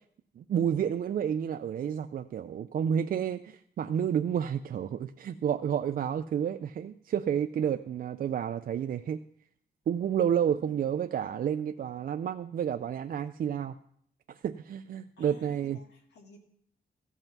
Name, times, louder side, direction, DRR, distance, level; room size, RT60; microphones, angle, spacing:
voice 1, 0.4-9.2 9.9-13.7 14.3-15.8, right 8 dB, 55° right, 8 dB, 0.4 m, -30 dB
voice 2, 10.5-10.9 15.2-16.4, left 4 dB, 80° left, 2 dB, 1.9 m, -54 dB
14.5 x 5.6 x 5.9 m, 0.65 s
wide cardioid pair, 140°, 17 cm